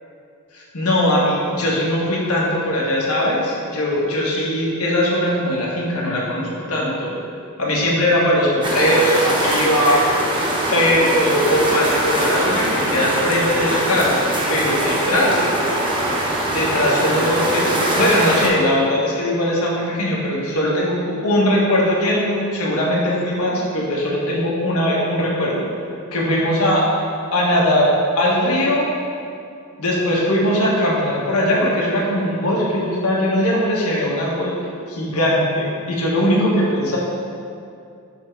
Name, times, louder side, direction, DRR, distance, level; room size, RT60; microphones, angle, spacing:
voice 1, 0.5-7.2 7.6-10.0 10.7-14.2 14.5-15.5 16.5-25.7 26.1-26.8 27.3-28.9 29.8-34.5 34.9-37.0, left 1 dB, 85° left, -4 dB, 1.4 m, -20 dB
sound 1, 8.6-18.5, right 1 dB, 20° right, 0.9 m, -22 dB
7.1 x 3.7 x 4.6 m, 2.4 s
head